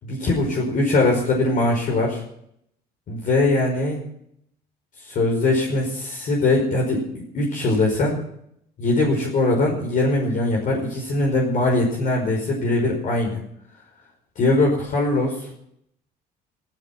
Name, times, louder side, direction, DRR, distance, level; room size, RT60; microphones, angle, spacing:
voice 1, 0.0-2.2 3.1-4.0 5.0-8.2 8.8-13.4 14.4-15.5, left 2 dB, 55° left, 0 dB, 5.1 m, -21 dB
15.5 x 14.5 x 6.0 m, 0.71 s
cardioid pair, 110°, 17 cm